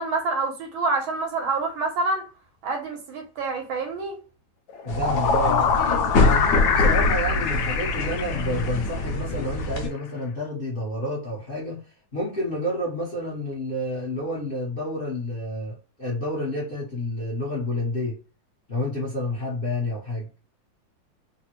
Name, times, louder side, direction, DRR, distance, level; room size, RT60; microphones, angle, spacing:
voice 1, 0.0-2.2 2.6-4.2, right 3 dB, 80° right, 1.6 m, -27 dB
sound 1, 4.7-9.1, left 6 dB, 80° left, 0.8 m, -25 dB
voice 2, 4.8-5.8 6.2-11.8 12.1-18.2 18.7-20.3, left 1 dB, 45° left, 0.8 m, -29 dB
sound 2, 4.9-9.9, left 2 dB, 65° left, 1.2 m, -25 dB
3.6 x 2.1 x 2.8 m
omnidirectional pair, 2.2 m